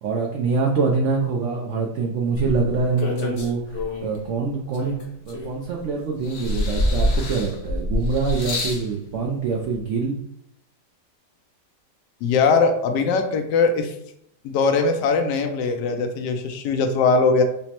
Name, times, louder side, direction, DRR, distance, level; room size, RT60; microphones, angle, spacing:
voice 1, 0.0-10.2, right 4 dB, 85° right, 0 dB, 0.6 m, -25 dB
sound 1, 2.3-4.2 4.7-5.8 6.2-8.9 9.8-9.9, left 1 dB, 55° left, 0.6 m, -26 dB
voice 2, 12.2-13.9 14.4-17.4, left 4 dB, 80° left, 6 dB, 1.2 m, -20 dB
5.1 x 2.0 x 2.9 m, 0.74 s
omnidirectional pair, 1.9 m